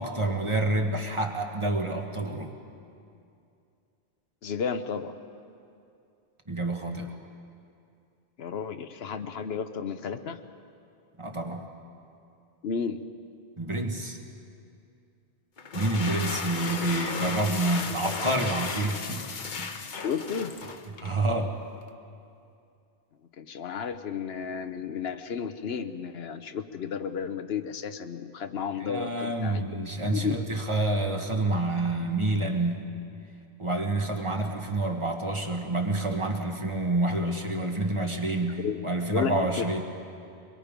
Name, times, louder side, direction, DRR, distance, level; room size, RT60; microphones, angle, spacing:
voice 1, 0.0-2.5 6.5-7.2 11.2-11.7 13.6-14.2 15.7-19.3 19.6-19.7 21.0-21.6 28.8-32.9 33.6-39.8, right 2 dB, 30° right, 2 dB, 1.4 m, -28 dB
voice 2, 4.4-5.2 8.4-10.4 12.6-13.0 19.9-20.6 23.4-30.3 38.6-38.8 39.1-39.6, left 6 dB, 75° left, 9 dB, 1.0 m, -33 dB
sound 1, 15.6-21.2, left 4 dB, 50° left, 1.0 m, -35 dB
23.0 x 22.5 x 5.2 m, 2.5 s
omnidirectional pair, 1.1 m